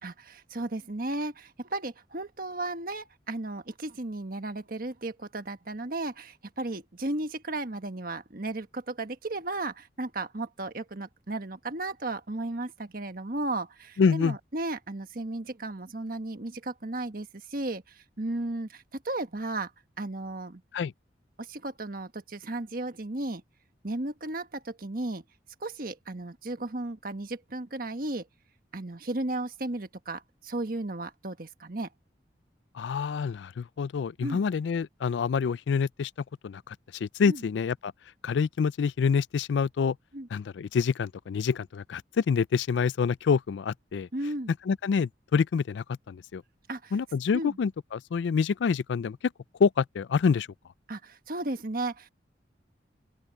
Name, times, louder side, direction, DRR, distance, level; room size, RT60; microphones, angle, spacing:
voice 1, 0.0-19.7 20.0-20.6 21.4-23.4 23.8-25.2 25.6-28.3 28.7-31.9 34.2-34.4 37.3-37.4 40.1-40.3 44.1-44.5 46.7-46.9 47.3-47.6 50.9-52.1, right 2 dB, 50° right, 1.4 m, -34 dB
voice 2, 14.0-14.4 20.7-20.9 32.7-36.1 36.4-36.8 37.0-37.9 38.2-40.0 40.3-44.1 44.7-46.4 46.9-49.2 49.6-50.5, left 6 dB, 85° left, 0.4 m, -27 dB
open air
head